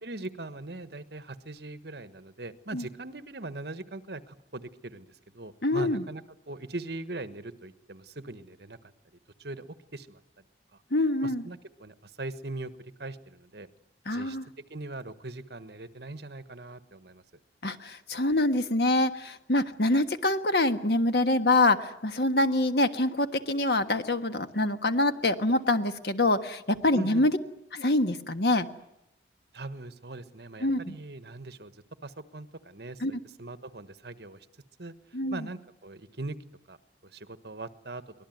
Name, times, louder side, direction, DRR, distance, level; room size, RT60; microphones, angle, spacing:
voice 1, 0.0-8.9 9.4-10.4 11.2-13.7 14.1-14.4 14.7-17.2 26.9-27.3 29.5-34.5 34.8-34.9 35.3-36.4 36.7-36.8 37.0-38.0, right 2 dB, 65° right, 11 dB, 1.4 m, -41 dB
voice 2, 5.6-6.0 10.9-11.4 14.1-14.4 17.6-27.3 27.7-28.7 30.6-30.9 33.0-33.1 35.1-35.5, left 2 dB, 65° left, 8 dB, 1.5 m, -25 dB
24.0 x 19.5 x 9.4 m, 0.84 s
head